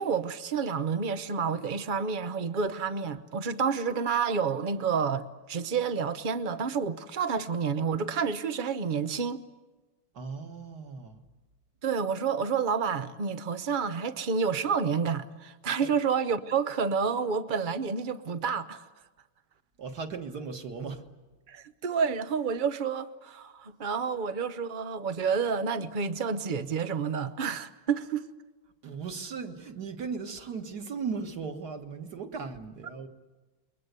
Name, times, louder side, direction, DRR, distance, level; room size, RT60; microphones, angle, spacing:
voice 1, 0.0-9.4 11.8-18.8 21.5-28.2, right 6 dB, 65° right, 0.4 m, -29 dB
voice 2, 10.1-11.2 15.8-15.9 19.8-21.0 28.8-33.1, right 5 dB, 50° right, 2.0 m, -37 dB
28.0 x 23.0 x 8.2 m
omnidirectional pair, 2.3 m